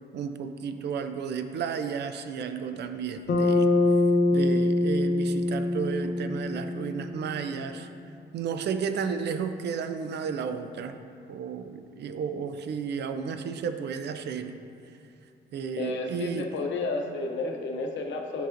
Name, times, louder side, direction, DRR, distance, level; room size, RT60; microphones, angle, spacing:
voice 1, 0.1-3.7 4.3-7.9 8.3-11.0 11.3-14.5 15.5-16.5, right 6 dB, 65° right, 9 dB, 0.4 m, -33 dB
Bass guitar, 3.3-7.6, left 2 dB, 55° left, 0.7 m, -24 dB
voice 2, 15.8-18.5, left 3 dB, 85° left, 2 dB, 0.7 m, -31 dB
9.2 x 4.7 x 2.5 m, 2.5 s
cardioid pair, 130°, 19 cm